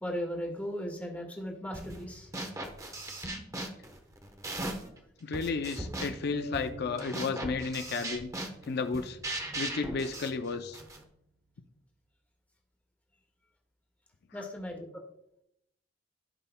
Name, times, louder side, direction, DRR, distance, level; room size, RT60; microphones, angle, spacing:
voice 1, 0.0-2.3 14.3-15.0, equal, 10° left, 0 dB, 1.7 m, -37 dB
sound 1, 1.7-2.0 2.3-5.0 5.3-11.0, right 1 dB, 20° right, 0.9 m, -38 dB
voice 2, 5.2-8.3 8.6-9.2 9.5-10.8, left 4 dB, 55° left, 8 dB, 0.5 m, -33 dB
sound 2, 6.3-10.1, right 1 dB, 80° right, 1.6 m, -47 dB
15.5 x 5.6 x 2.2 m, 0.79 s
head